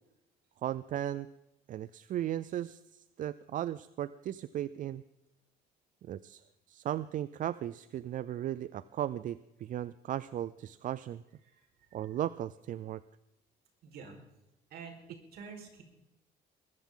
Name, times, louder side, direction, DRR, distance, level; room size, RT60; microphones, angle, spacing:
voice 1, 0.6-1.3 1.7-5.0 6.0-11.2 11.9-13.0, right 12 dB, 50° right, 17 dB, 0.4 m, -36 dB
voice 2, 11.4-12.1 13.8-14.2 14.7-15.8, right 5 dB, 65° right, 2 dB, 4.6 m, -49 dB
21.5 x 13.5 x 3.8 m, 0.91 s
cardioid pair, 110°, 17 cm